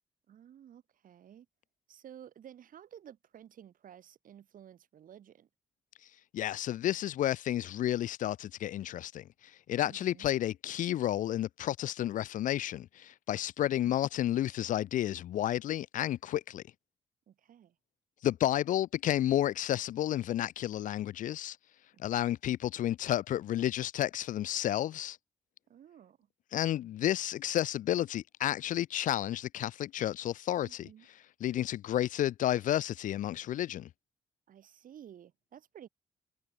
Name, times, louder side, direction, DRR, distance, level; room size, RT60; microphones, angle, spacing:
voice 1, 0.3-1.5 1.9-5.5 9.8-10.3 13.6-14.0 17.3-17.8 21.9-22.2 25.7-26.3 30.6-31.1 34.5-35.9, right 10 dB, 65° right, 3.5 m, -53 dB
voice 2, 6.3-9.3 9.7-16.6 18.2-21.6 22.0-25.2 26.5-30.9 31.4-33.9, left 12 dB, 60° left, 0.4 m, -31 dB
hypercardioid pair, 45°, 15 cm